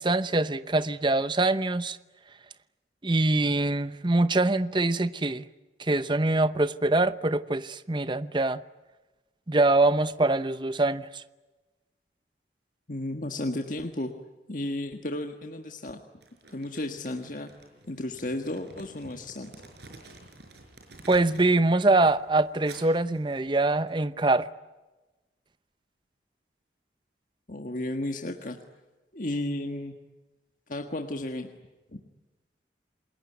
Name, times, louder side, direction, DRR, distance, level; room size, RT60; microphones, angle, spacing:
voice 1, 0.0-2.0 3.0-5.4 5.8-8.6 9.5-11.2 21.1-24.5, right 2 dB, 25° right, 0.8 m, -24 dB
voice 2, 12.9-14.1 14.5-16.0 16.5-17.5 17.9-19.5 27.5-28.6 29.1-29.9 30.7-31.5 31.9-32.0, left 1 dB, 45° left, 1.6 m, -33 dB
Crumpling crinkling, 16.2-21.6 21.9-23.9, right 2 dB, 65° right, 5.8 m, -50 dB
28.5 x 21.0 x 9.5 m
head